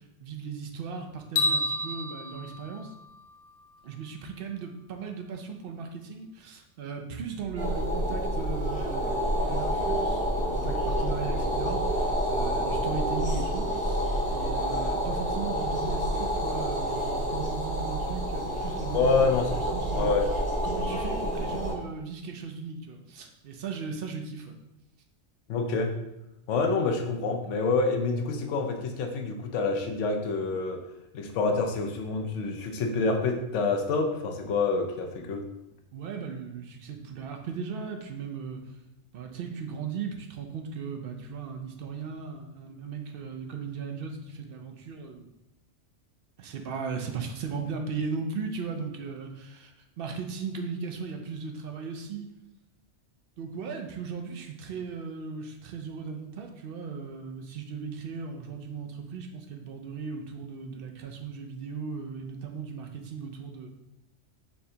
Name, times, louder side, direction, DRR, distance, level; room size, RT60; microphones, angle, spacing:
voice 1, 0.0-2.9 3.8-14.0 14.3-20.1 20.6-24.6 35.9-38.6 39.1-45.3 46.4-52.3 53.4-63.7, right 5 dB, 60° right, 3 dB, 0.7 m, -37 dB
sound 1, 1.4-3.6, left 1 dB, 55° left, 0.6 m, -30 dB
sound 2, 7.4-21.0, right 2 dB, 40° left, 1.0 m, -40 dB
sound 3, 7.5-21.7, equal, 5° left, 0.9 m, -29 dB
voice 2, 18.9-20.3 25.5-25.9 26.5-30.8 31.1-35.5, left 3 dB, 80° left, 4 dB, 0.9 m, -27 dB
4.4 x 3.2 x 2.7 m, 0.89 s
omnidirectional pair, 1.2 m